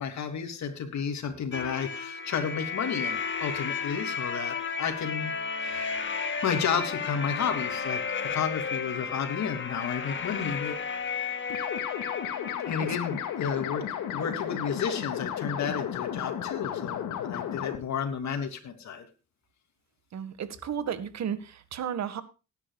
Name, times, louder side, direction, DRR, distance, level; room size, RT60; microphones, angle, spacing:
voice 1, 0.0-6.0 6.4-8.0 8.3-10.8 12.7-13.9 14.1-19.0, left 7 dB, 65° left, 6 dB, 3.1 m, -32 dB
sound 1, 1.5-14.2, left 5 dB, 40° left, 2.0 m, -33 dB
sound 2, 11.5-17.8, left 10 dB, 85° left, 2.3 m, -33 dB
voice 2, 20.1-22.2, right 8 dB, 60° right, 12 dB, 1.9 m, -33 dB
19.0 x 10.5 x 2.4 m, 0.31 s
cardioid pair, 90°, 30 cm